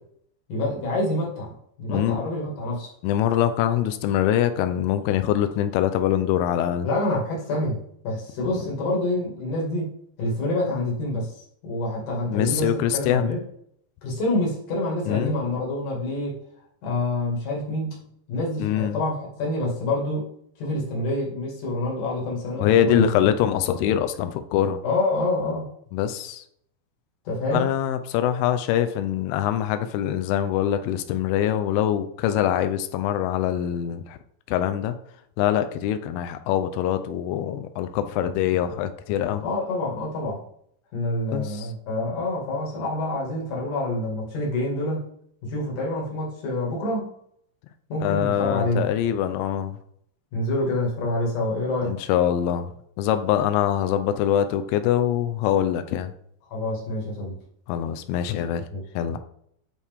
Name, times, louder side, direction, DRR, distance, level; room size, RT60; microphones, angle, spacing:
voice 1, 0.5-2.9 6.8-7.8 8.0-9.9 10.2-11.3 11.6-13.4 14.0-16.4 16.8-17.9 18.3-20.3 20.6-23.1 24.8-25.7 27.2-27.7 39.4-40.4 40.9-45.0 45.4-47.1 47.9-48.9 50.3-52.0 56.5-57.3 58.7-58.8, left 2 dB, 50° left, -3 dB, 2.8 m, -27 dB
voice 2, 1.9-2.2 3.0-6.9 12.3-13.4 15.1-15.4 18.6-19.0 22.6-24.8 25.9-26.4 27.5-34.2 34.5-35.0 35.4-39.4 41.3-41.7 48.0-49.8 51.8-52.7 53.0-56.1 57.7-58.7 59.0-59.2, left 10 dB, 85° left, 9 dB, 3.0 m, -24 dB
9.7 x 4.6 x 3.5 m, 0.68 s
omnidirectional pair, 5.7 m